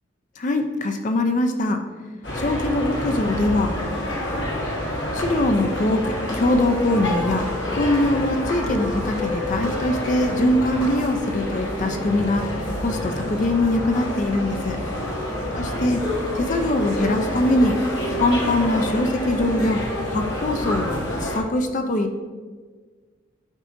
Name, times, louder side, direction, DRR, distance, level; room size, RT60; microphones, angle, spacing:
voice 1, 0.4-1.8 2.3-3.7 5.1-14.8 15.5-16.0 16.3-17.8 18.2-19.8 20.1-22.2, left 1 dB, 40° left, 6 dB, 0.4 m, -22 dB
sound 1, 2.2-21.4, left 1 dB, 60° left, 1.2 m, -27 dB
11.0 x 4.0 x 2.5 m, 1.5 s
head